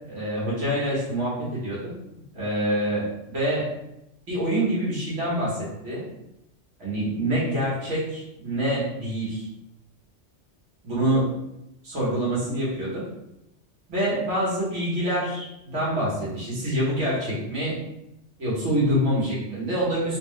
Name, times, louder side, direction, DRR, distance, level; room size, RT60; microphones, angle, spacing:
voice 1, 0.1-1.8 2.3-3.7 4.3-5.6 5.8-6.0 6.8-9.4 10.8-11.3 11.8-13.0 13.9-17.8 18.4-20.2, right 1 dB, 80° right, -8 dB, 1.9 m, -26 dB
3.9 x 2.4 x 3.2 m, 0.87 s
omnidirectional pair, 1.2 m